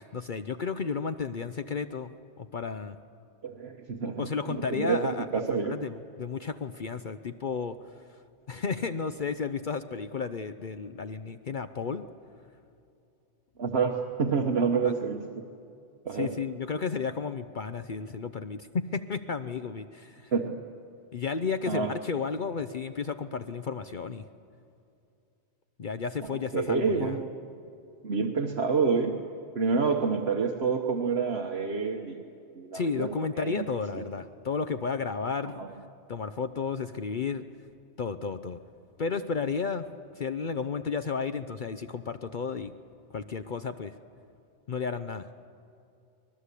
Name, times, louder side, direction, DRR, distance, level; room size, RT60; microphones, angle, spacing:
voice 1, 0.0-2.1 2.4-3.0 4.2-8.2 8.5-12.1 14.8-14.9 16.1-20.3 21.1-24.3 25.8-27.2 32.7-35.6 36.1-37.4 38.0-38.6 39.0-39.8 40.1-42.7 43.1-43.9 44.7-45.3, left 5 dB, 50° left, 10 dB, 0.8 m, -33 dB
voice 2, 3.4-4.3 4.7-5.8 13.6-15.4 16.0-16.3 20.3-20.6 21.7-21.9 26.5-27.3 28.0-29.1 29.5-32.2 32.5-33.1 33.4-33.7 33.9-34.0 35.4-35.7, right 5 dB, 65° right, 3 dB, 1.4 m, -28 dB
24.5 x 20.0 x 8.3 m, 2.6 s
omnidirectional pair, 1.2 m